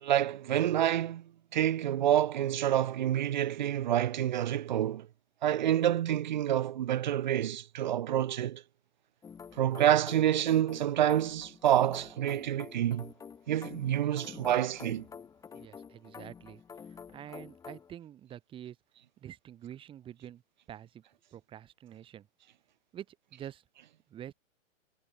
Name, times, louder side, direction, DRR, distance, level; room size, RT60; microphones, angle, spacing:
voice 1, 0.0-1.2 1.5-5.1 5.4-8.6 9.6-13.1 13.5-15.0, right 11 dB, 35° right, 0.7 m, -28 dB
sound 1, 9.2-17.9, left 6 dB, 10° left, 5.1 m, -48 dB
voice 2, 15.5-18.8 19.2-20.4 20.7-21.0 21.3-22.3 22.9-23.6 24.1-24.3, right 10 dB, 15° right, 4.4 m, -47 dB
hypercardioid pair, 165°, 39 cm